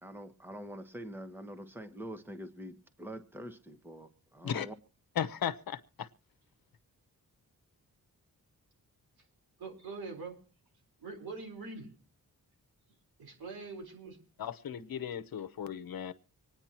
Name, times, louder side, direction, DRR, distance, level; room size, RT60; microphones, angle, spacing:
voice 1, 0.0-4.7, equal, 5° right, 8 dB, 1.2 m, -45 dB
voice 2, 5.2-6.1 14.4-16.1, left 9 dB, 70° left, 11 dB, 0.9 m, -36 dB
voice 3, 9.6-10.4 11.0-11.9 13.2-14.2, right 4 dB, 80° right, 2 dB, 4.3 m, -43 dB
25.5 x 9.8 x 3.0 m, 0.38 s
wide cardioid pair, 110°, 36 cm